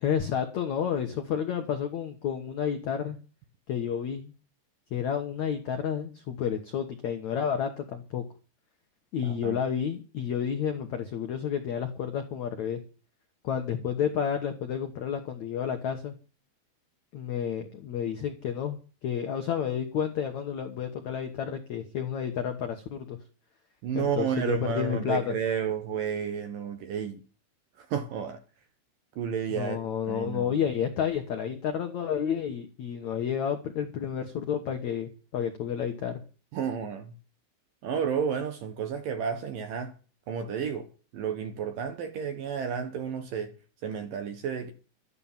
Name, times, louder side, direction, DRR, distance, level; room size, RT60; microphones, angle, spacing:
voice 1, 0.0-3.2 3.7-4.3 4.9-8.2 9.1-12.8 13.4-16.1 17.1-23.2 23.9-25.3 29.5-36.2, left 8 dB, 85° left, 1.6 m, -30 dB
voice 2, 9.2-9.6 23.8-27.2 27.8-28.4 29.2-29.8 30.1-30.6 36.5-37.1 37.8-39.9 40.3-40.9 41.1-43.5 43.8-44.7, right 7 dB, 65° right, 2.3 m, -31 dB
12.5 x 9.8 x 7.3 m
omnidirectional pair, 5.3 m